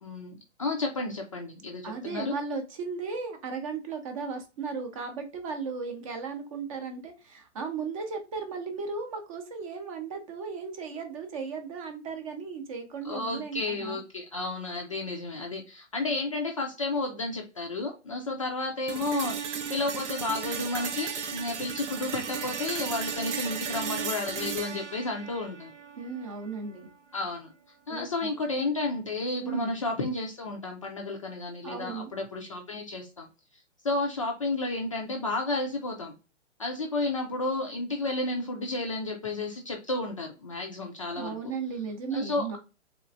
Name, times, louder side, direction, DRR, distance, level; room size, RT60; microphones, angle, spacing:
voice 1, 0.0-2.3 13.0-25.7 27.1-27.5 27.9-33.3 33.8-36.1 36.6-41.3 42.1-42.6, left 2 dB, 30° left, 1 dB, 0.4 m, -32 dB
voice 2, 1.8-14.0 25.9-26.9 27.9-28.3 29.4-29.8 31.6-32.1 41.2-42.6, right 5 dB, 30° right, 6 dB, 0.6 m, -36 dB
sound 1, 18.9-26.9, right 7 dB, 70° right, 0.7 m, -35 dB
3.3 x 3.0 x 2.4 m, 0.30 s
hypercardioid pair, 135°, 37 cm